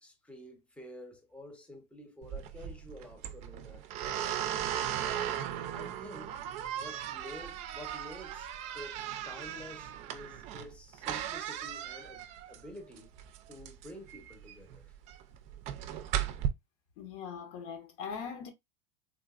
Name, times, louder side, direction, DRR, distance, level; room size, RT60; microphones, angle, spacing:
voice 1, 0.0-4.3 5.1-6.3 6.8-13.1 13.5-14.9, left 1 dB, 5° left, 0.8 m, -50 dB
sound 1, 2.2-16.5, right 10 dB, 45° right, 0.4 m, -37 dB
voice 2, 17.0-18.5, left 6 dB, 65° left, 0.9 m, -41 dB
3.6 x 2.4 x 2.3 m
supercardioid pair, 130°, 15 cm